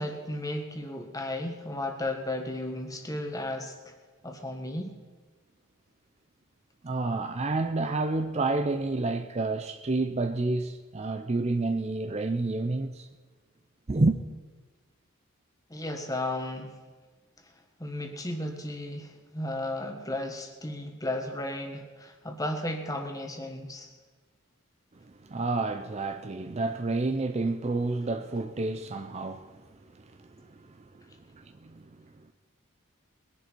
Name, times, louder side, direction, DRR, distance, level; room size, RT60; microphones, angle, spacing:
voice 1, 0.0-3.9 4.2-4.9 15.7-16.7 17.8-23.9, left 1 dB, 15° left, 1.5 m, -34 dB
voice 2, 6.8-13.1 13.9-14.2 25.0-32.3, right 2 dB, 30° right, 0.5 m, -30 dB
21.0 x 11.0 x 4.6 m
head